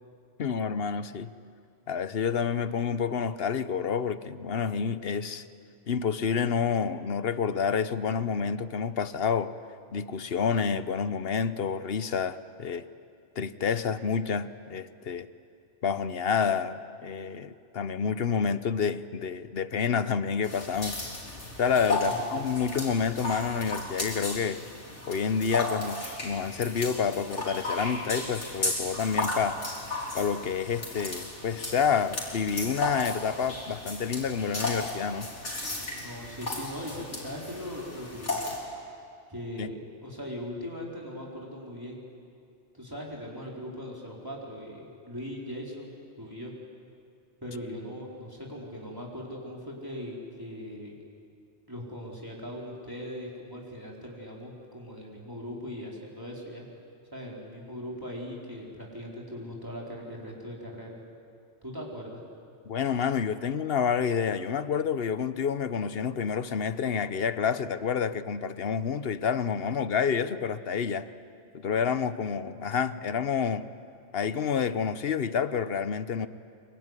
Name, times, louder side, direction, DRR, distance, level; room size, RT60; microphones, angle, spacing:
voice 1, 0.4-1.3 1.9-5.5 5.9-9.5 9.9-12.8 13.4-15.3 15.8-21.0 21.6-24.6 25.1-29.6 30.1-35.3 39.6-39.7 62.7-71.1 71.5-73.7 74.1-76.3, left 6 dB, 60° left, 13 dB, 1.0 m, -28 dB
sound 1, 20.4-38.6, left 2 dB, 80° left, 4.3 m, -35 dB
voice 2, 22.0-22.4 35.9-38.4 39.3-42.0 42.7-46.5 47.4-50.9 51.7-56.7 57.1-61.0 61.6-62.2, equal, 20° right, -3 dB, 4.5 m, -40 dB
25.0 x 23.5 x 9.8 m, 2.4 s
omnidirectional pair, 1.2 m